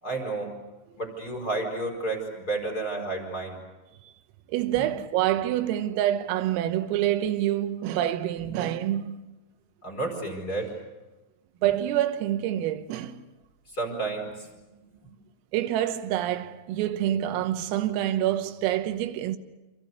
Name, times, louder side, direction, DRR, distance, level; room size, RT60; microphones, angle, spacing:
voice 1, 0.0-0.5 1.0-3.6 4.7-4.9 8.4-8.5 9.8-10.7 13.7-14.5, right 2 dB, 20° left, 4.7 m, -31 dB
voice 2, 4.5-9.3 11.6-13.2 15.5-19.4, right 12 dB, 85° right, 3.8 m, -27 dB
27.5 x 26.5 x 6.7 m
omnidirectional pair, 5.9 m